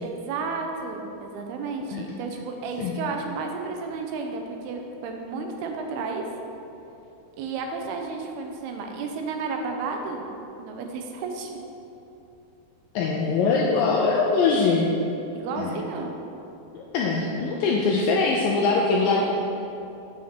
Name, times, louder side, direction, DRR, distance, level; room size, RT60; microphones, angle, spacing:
voice 1, 0.0-6.2 7.4-10.3 10.6-11.5 15.3-16.1, right 4 dB, 80° right, 3 dB, 2.6 m, -32 dB
voice 2, 13.0-14.9 15.6-15.8 16.7-19.3, left 4 dB, 80° left, -1 dB, 2.0 m, -22 dB
7.2 x 5.6 x 6.6 m, 2.8 s
omnidirectional pair, 4.6 m